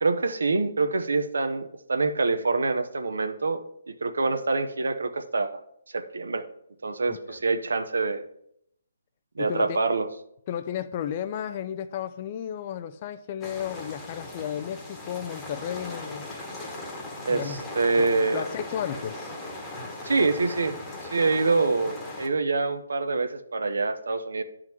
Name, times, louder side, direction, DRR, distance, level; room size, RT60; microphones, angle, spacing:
voice 1, 0.0-3.6 3.9-5.6 5.9-6.5 6.8-8.2 9.4-10.1 17.2-18.4 20.0-20.7 21.0-24.4, right 3 dB, 80° right, 0.7 m, -25 dB
voice 2, 7.1-7.4 9.4-9.8 10.5-16.3 17.3-17.6 18.0-18.1 18.3-19.3, left 9 dB, 35° left, 0.4 m, -33 dB
sound 1, 13.4-22.3, left 2 dB, 10° left, 1.2 m, -38 dB
10.5 x 3.7 x 4.5 m
hypercardioid pair, 150°, 0 cm